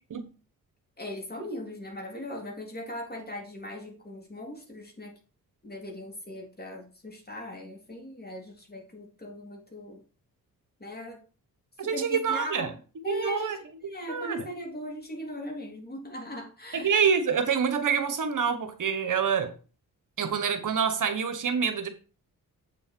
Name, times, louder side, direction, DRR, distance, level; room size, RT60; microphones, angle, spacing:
voice 1, 1.0-5.2 5.6-10.0 10.8-11.2 11.8-13.6 13.9-16.9, left 1 dB, 25° left, 3.4 m, -39 dB
voice 2, 11.8-12.7 13.1-13.6 14.1-14.4 16.7-19.5 20.2-21.9, right 6 dB, 60° right, 1.4 m, -26 dB
7.8 x 6.8 x 4.6 m
cardioid pair, 70°, 35 cm